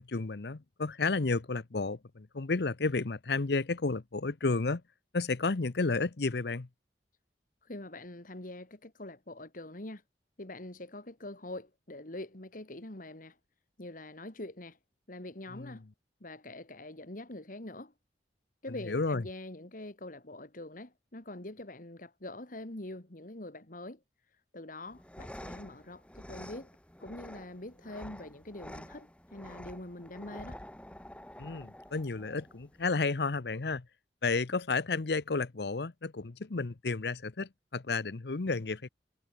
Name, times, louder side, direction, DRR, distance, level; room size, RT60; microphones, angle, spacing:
voice 1, 0.0-4.8 5.1-6.7 15.5-15.8 18.7-19.3 31.4-33.9 34.2-38.9, left 3 dB, 65° left, 0.8 m, -32 dB
voice 2, 7.7-10.0 10.4-13.3 13.8-14.8 15.1-15.8 16.2-17.9 18.6-24.0 24.5-26.7 27.0-30.6, left 1 dB, 50° left, 2.3 m, -44 dB
sound 1, 24.9-32.9, left 1 dB, 5° left, 2.5 m, -48 dB
head